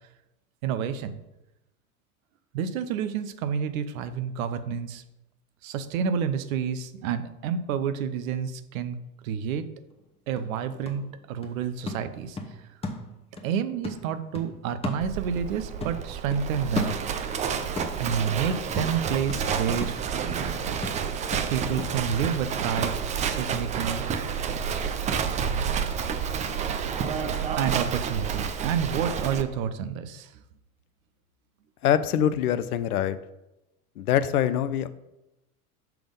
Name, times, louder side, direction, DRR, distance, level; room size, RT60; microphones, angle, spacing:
voice 1, 0.6-1.2 2.5-5.0 5.6-9.0 9.2-9.6 10.3-12.4 13.4-17.0 18.0-20.0 21.5-23.1 23.4-24.2 25.4-25.7 27.6-30.3, right 7 dB, 65° right, 11 dB, 0.7 m, -29 dB
sound 1, 9.9-10.0 10.4-13.5 13.8-15.5 15.8-17.4 17.8-23.4 23.8-23.9, left 2 dB, 15° left, 0.9 m, -37 dB
Livestock farm animals working animals, 15.0-29.4, right 7 dB, 20° right, 0.3 m, -29 dB
voice 2, 31.8-33.2 34.0-34.9, left 10 dB, 80° left, 14 dB, 0.6 m, -24 dB
5.8 x 3.5 x 5.3 m, 0.92 s
hypercardioid pair, 85°, 44 cm